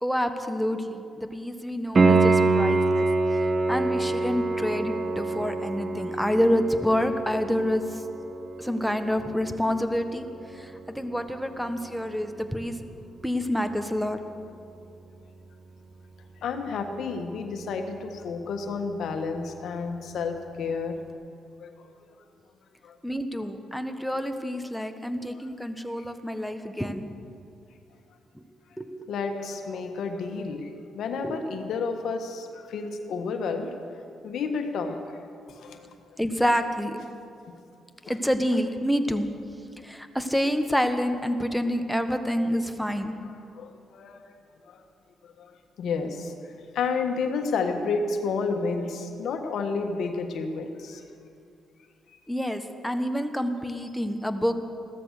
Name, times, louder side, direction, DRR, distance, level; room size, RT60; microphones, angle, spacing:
voice 1, 0.0-3.4 3.7-8.0 8.6-10.2 10.5-12.8 13.2-14.2 23.0-27.1 28.3-28.4 28.8-29.1 31.2-31.5 36.2-37.0 38.0-39.3 39.8-43.2 52.3-54.5, equal, ahead, 7 dB, 1.2 m, -28 dB
Piano, 1.9-12.6 15.9-16.0, right 3 dB, 45° right, 1.3 m, -26 dB
voice 2, 16.4-20.9 21.6-22.1 22.8-23.0 26.0-26.1 29.1-33.7 34.2-35.2 35.5-35.9 42.5-42.6 43.2-44.4 44.7-44.8 45.2-45.5 45.8-51.0, left 4 dB, 70° left, 5 dB, 1.4 m, -31 dB
15.5 x 13.0 x 6.6 m, 2.5 s
supercardioid pair, 60°, 0 cm